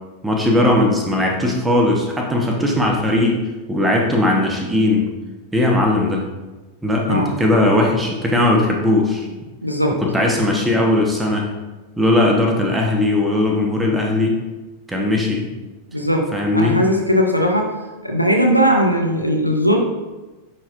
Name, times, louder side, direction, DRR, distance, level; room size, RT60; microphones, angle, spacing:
voice 1, 0.2-3.4 3.7-5.0 5.5-6.2 6.8-9.3 10.0-11.5 12.0-14.4 14.9-15.5 16.3-16.8, left 1 dB, 10° right, 0 dB, 1.2 m, -18 dB
voice 2, 9.6-10.0 15.9-17.7 18.0-19.8, equal, 90° right, 1 dB, 0.8 m, -18 dB
10.5 x 4.3 x 2.6 m, 1.2 s
figure-of-eight pair, 90°, 0 cm